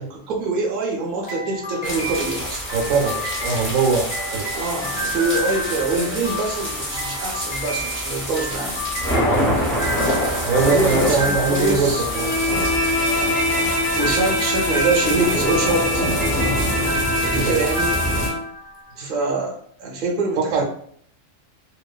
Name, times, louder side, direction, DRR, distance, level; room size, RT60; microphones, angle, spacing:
voice 1, 0.0-2.6 4.5-8.9 10.7-12.0 13.2-16.0 17.2-18.0 19.0-20.6, right 3 dB, 50° right, -1 dB, 0.6 m, -25 dB
sound 1, 1.2-18.9, equal, 45° left, 0.7 m, -31 dB
sound 2, 1.8-18.3, equal, 15° left, 0.4 m, -26 dB
voice 2, 2.7-4.5 9.2-9.6 10.4-12.4 14.3-14.4 17.3-17.6 19.0-19.1 20.5-20.6, right 4 dB, 85° right, 1 dB, 1.0 m, -22 dB
Bowed string instrument, 12.1-18.5, left 1 dB, 80° left, 1.1 m, -24 dB
2.9 x 2.1 x 2.3 m, 0.63 s
omnidirectional pair, 1.4 m